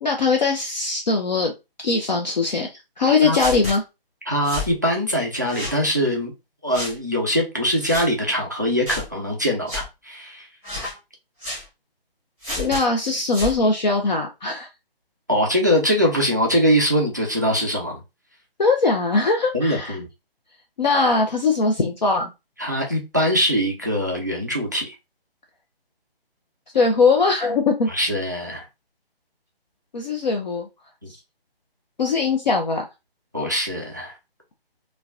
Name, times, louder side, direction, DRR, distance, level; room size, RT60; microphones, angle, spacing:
voice 1, 0.0-1.5 1.8-2.7 3.0-3.8 12.6-14.7 18.6-20.0 20.8-22.3 26.7-27.9 29.9-30.7 32.0-32.8, left 4 dB, 45° left, 0.6 m, -20 dB
sound 1, 3.3-3.8 4.4-4.7 5.5-5.8 6.7-6.9 7.7-8.1 8.8-9.1 9.7-9.8 10.6-11.0 11.4-11.6 12.4-12.8 13.3-13.6, left 2 dB, 10° left, 1.5 m, -30 dB
voice 2, 4.3-6.3 6.6-10.5 15.3-18.0 19.5-20.1 22.6-24.9 27.9-28.6 31.0-31.1 33.3-34.1, equal, 20° right, 0.3 m, -22 dB
4.5 x 2.3 x 2.4 m
figure-of-eight pair, 145°, 30 cm